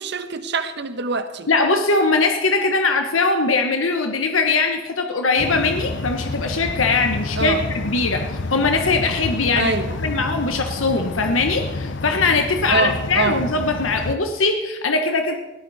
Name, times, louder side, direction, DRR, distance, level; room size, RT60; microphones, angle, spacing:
voice 1, 0.0-1.5 7.3-7.6 9.5-10.0 12.7-13.5, right 3 dB, 60° right, 10 dB, 1.3 m, -24 dB
voice 2, 1.5-7.6 7.8-8.2 8.5-15.4, left 3 dB, 80° left, 5 dB, 1.3 m, -21 dB
sound 1, 5.4-14.2, left 2 dB, 65° left, 0.9 m, -29 dB
19.5 x 16.0 x 4.3 m, 1.1 s
head